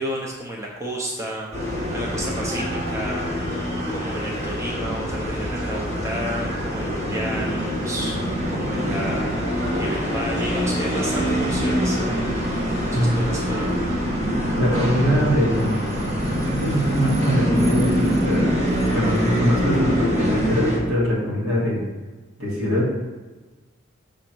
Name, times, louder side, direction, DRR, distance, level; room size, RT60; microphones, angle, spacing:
voice 1, 0.0-3.6 3.9-8.2 8.5-12.1 12.9-13.8, equal, 15° right, -2 dB, 0.7 m, -32 dB
sound 1, 1.5-20.8, equal, 35° right, 1.8 m, -24 dB
voice 2, 14.6-15.8 16.4-18.4 18.9-21.9 22.4-22.9, equal, 60° right, -5 dB, 2.3 m, -22 dB
6.4 x 3.8 x 6.1 m, 1.3 s
head